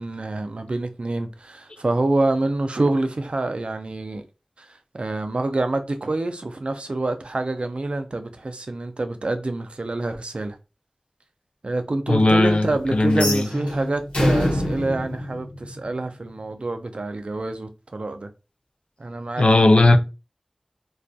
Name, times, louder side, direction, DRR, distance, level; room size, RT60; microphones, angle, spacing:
voice 1, 0.0-4.3 4.6-10.6 11.6-18.3 19.0-19.7, right 2 dB, 65° right, 0.3 m, -27 dB
voice 2, 12.1-13.5 19.4-20.0, left 2 dB, 65° left, 0.3 m, -17 dB
sound 1, 13.1-16.2, left 1 dB, 85° left, 0.9 m, -25 dB
2.3 x 2.1 x 2.6 m
wide cardioid pair, 45°, 2 cm